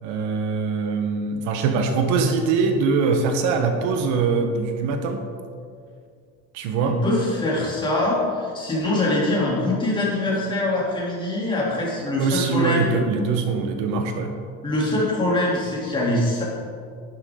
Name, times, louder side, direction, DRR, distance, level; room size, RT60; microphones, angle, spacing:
voice 1, 0.0-5.2 6.5-7.0 12.2-14.3, right 4 dB, 70° right, 6 dB, 1.2 m, -23 dB
voice 2, 6.8-13.0 14.6-16.4, left 1 dB, 15° left, -5 dB, 3.2 m, -23 dB
11.0 x 10.5 x 3.9 m, 2.2 s
cardioid pair, 145°, 30 cm